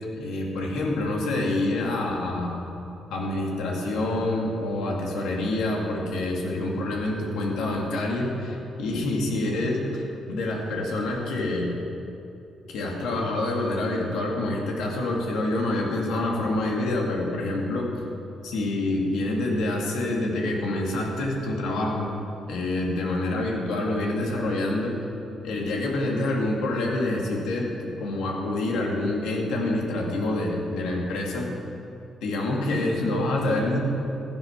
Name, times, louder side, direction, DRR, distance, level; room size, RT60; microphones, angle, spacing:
voice 1, 0.1-2.6 3.1-11.8 12.7-17.9 18.4-22.1 22.5-25.0 25.4-31.5 32.2-33.8, left 2 dB, 85° left, -1 dB, 2.4 m, -27 dB
15.5 x 8.1 x 6.0 m, 2.8 s
cardioid pair, 90°, 0 cm